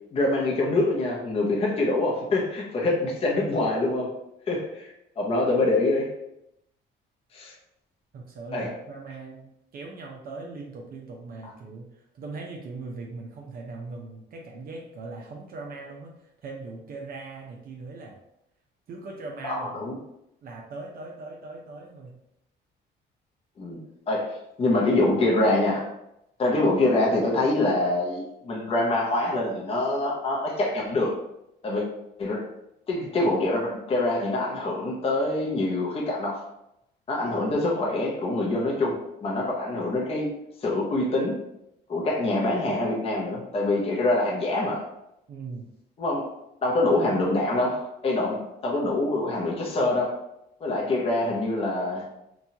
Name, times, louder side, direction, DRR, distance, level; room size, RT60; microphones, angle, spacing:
voice 1, 0.1-4.1 4.5-6.1 7.3-7.5 8.5-8.7 19.4-20.0 23.6-23.8 24.1-25.9 26.4-31.2 31.6-31.9 32.2-32.5 32.9-36.5 37.1-40.3 40.6-41.4 41.9-44.9 46.0-46.3 46.6-50.2 50.6-52.1, left 2 dB, 30° left, -3 dB, 0.6 m, -25 dB
voice 2, 8.1-16.1 16.4-18.2 18.9-19.8 20.4-22.2 45.3-45.7, right 3 dB, 50° right, 0 dB, 0.5 m, -40 dB
3.0 x 2.2 x 2.7 m, 0.82 s
cardioid pair, 110°, 19 cm